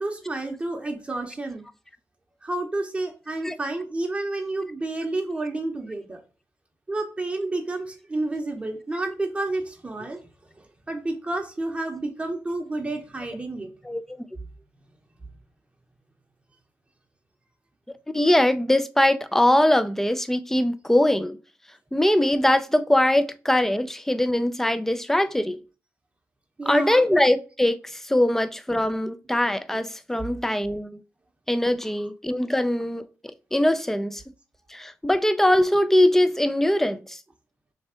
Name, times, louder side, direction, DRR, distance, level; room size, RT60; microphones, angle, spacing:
voice 1, 0.0-1.6 2.4-6.2 6.9-10.2 10.6-13.7 26.6-27.0, right 2 dB, 20° right, 0.8 m, -30 dB
voice 2, 13.8-14.2 18.1-21.4 21.9-25.6 26.7-31.0 31.5-34.2 34.7-37.2, left 1 dB, 5° left, 0.4 m, -22 dB
3.4 x 3.2 x 4.3 m
cardioid pair, 90°, 6 cm